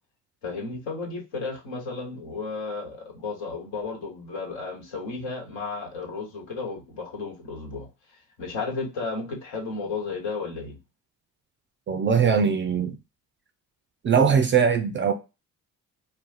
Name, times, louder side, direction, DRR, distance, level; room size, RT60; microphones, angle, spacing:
voice 1, 0.4-7.9 8.4-10.8, left 4 dB, 65° left, 1.2 m, -33 dB
voice 2, 11.9-13.0 14.0-15.1, right 6 dB, 25° right, 0.4 m, -21 dB
2.4 x 2.3 x 3.8 m
figure-of-eight pair, 45°, 47 cm